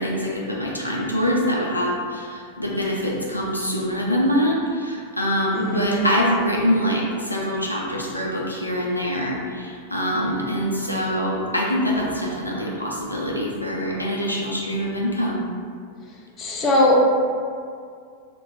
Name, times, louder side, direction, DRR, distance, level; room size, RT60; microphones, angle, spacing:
voice 1, 0.0-15.4, equal, 90° left, -4 dB, 0.3 m, -24 dB
voice 2, 5.5-6.1 16.4-17.0, left 1 dB, 30° left, -2 dB, 0.5 m, -20 dB
2.2 x 2.2 x 3.3 m, 2.2 s
figure-of-eight pair, 90°, 0 cm